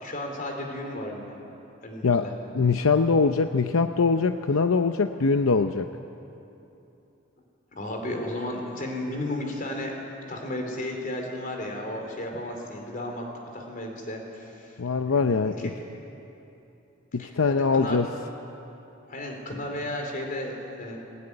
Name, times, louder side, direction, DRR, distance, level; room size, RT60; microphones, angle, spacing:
voice 1, 0.0-1.4 1.8-2.3 7.8-9.9 10.3-13.2 13.5-14.8 15.0-15.7 17.2-18.1 19.1-21.0, left 1 dB, 40° left, 2 dB, 3.9 m, -34 dB
voice 2, 2.5-5.9 14.8-15.7 17.1-18.1, left 4 dB, 85° left, 8 dB, 0.6 m, -23 dB
20.0 x 19.0 x 9.8 m, 2.9 s
head